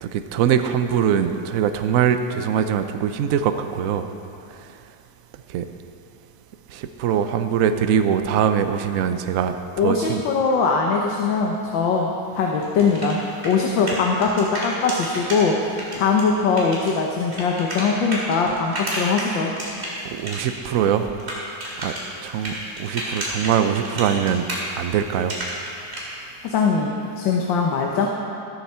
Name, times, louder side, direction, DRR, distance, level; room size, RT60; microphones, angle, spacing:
voice 1, 0.0-4.1 5.5-5.6 6.7-9.6 9.8-10.2 20.0-21.1 21.8-21.9 22.2-24.5 24.8-25.3, right 8 dB, 70° right, 8 dB, 0.8 m, -22 dB
voice 2, 9.8-13.2 13.4-19.5 26.4-28.1, left 5 dB, 80° left, 0 dB, 1.7 m, -21 dB
sound 1, 12.5-15.4 15.8-20.7 20.9-26.0, right 1 dB, 35° right, 2.9 m, -31 dB
14.0 x 13.0 x 4.4 m, 2.6 s
omnidirectional pair, 2.0 m